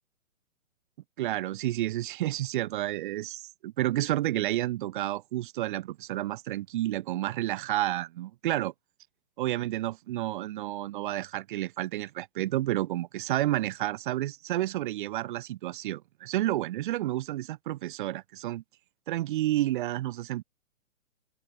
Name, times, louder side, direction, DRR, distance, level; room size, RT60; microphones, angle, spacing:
voice 1, 1.2-8.7 9.4-18.6 19.1-20.4, right 15 dB, 40° right, 0.9 m, -30 dB
open air
hypercardioid pair, 135°, 41 cm